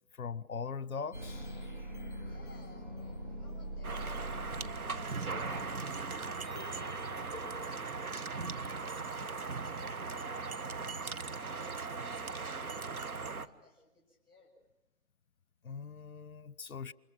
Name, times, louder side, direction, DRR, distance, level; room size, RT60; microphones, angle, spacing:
voice 1, 0.1-1.5 15.6-16.9, left 5 dB, 70° left, 1.0 m, -40 dB
sound 1, 1.1-7.7, right 1 dB, 30° right, 1.2 m, -44 dB
sound 2, 2.0-7.2, equal, 45° right, 5.0 m, -57 dB
voice 2, 2.2-9.7 10.1-11.0 11.3-14.5, left 2 dB, ahead, 6.4 m, -60 dB
sound 3, 3.8-13.5, right 4 dB, 70° right, 1.4 m, -39 dB
29.0 x 26.5 x 6.1 m
figure-of-eight pair, 180°, 45 cm